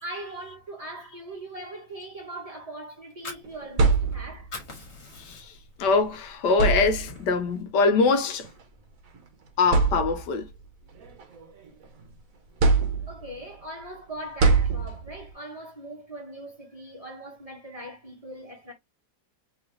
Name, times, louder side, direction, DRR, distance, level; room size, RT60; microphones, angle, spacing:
voice 1, 0.0-4.5 13.1-18.7, right 1 dB, 20° right, 1.5 m, -40 dB
Fire, 3.0-4.1 4.4-5.7 6.2-6.3 6.7-7.7, left 3 dB, 40° left, 1.7 m, -42 dB
sound 1, 3.4-4.6 5.8-6.0 6.5-7.3 8.4-8.6 9.1-9.2 9.7-10.5 11.0-12.0 12.6-13.4 14.4-15.3, right 4 dB, 55° right, 1.4 m, -24 dB
voice 2, 5.8-8.5 9.6-10.5, left 4 dB, 75° left, 1.4 m, -23 dB
4.0 x 3.4 x 3.1 m
omnidirectional pair, 1.8 m